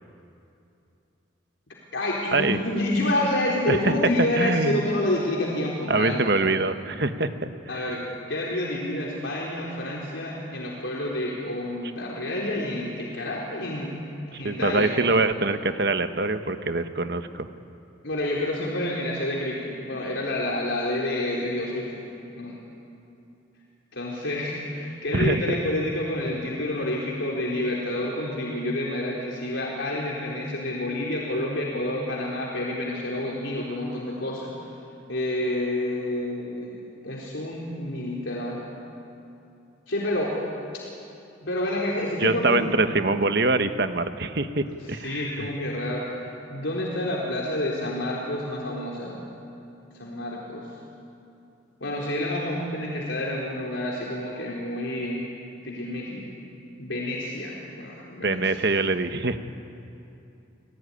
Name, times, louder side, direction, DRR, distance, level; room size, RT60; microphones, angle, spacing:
voice 1, 1.9-6.3 7.7-8.0 8.3-13.9 14.3-15.0 18.0-22.0 22.4-22.6 23.9-34.5 35.1-36.8 37.0-38.6 39.9-40.3 41.4-42.7 44.7-49.2 49.9-50.7 51.8-55.3 55.6-56.4 56.8-58.5, left 1 dB, 80° left, -4 dB, 4.0 m, -28 dB
voice 2, 4.2-4.9 5.9-7.5 14.3-17.5 25.1-25.6 42.2-45.5 58.2-59.4, right 3 dB, 55° right, 9 dB, 1.3 m, -24 dB
29.0 x 20.0 x 10.0 m, 2.7 s
head